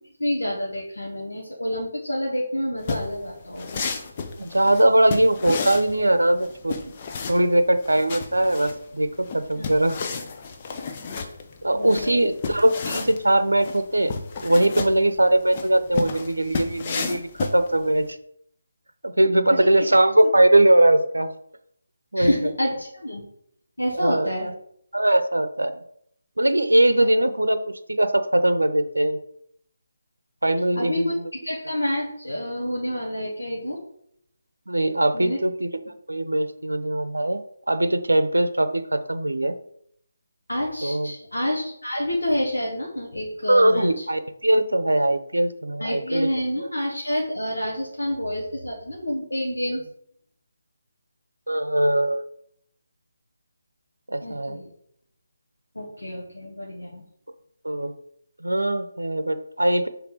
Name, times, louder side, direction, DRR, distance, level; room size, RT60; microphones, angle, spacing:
voice 1, 0.2-3.8 9.6-9.7 11.7-12.3 19.5-19.7 22.1-23.2 23.8-24.5 30.8-31.2 31.4-33.8 35.1-35.4 40.5-44.0 45.8-49.8 54.2-54.7 55.7-57.0, equal, 75° left, -3 dB, 1.4 m, -28 dB
sound 1, 2.8-18.1, left 4 dB, 30° left, 0.6 m, -32 dB
voice 2, 4.4-6.8 7.3-10.0 11.6-14.1 14.4-18.0 19.0-21.3 22.1-22.5 23.9-24.5 24.9-25.7 26.4-27.6 27.9-29.2 30.4-31.3 34.7-37.4 37.7-39.5 40.8-41.1 43.5-46.3 46.6-46.7 51.5-52.2 54.1-54.6 57.6-57.9 58.4-59.9, right 1 dB, 75° right, 10 dB, 0.7 m, -21 dB
5.9 x 3.5 x 4.7 m, 0.69 s
figure-of-eight pair, 150°, 0 cm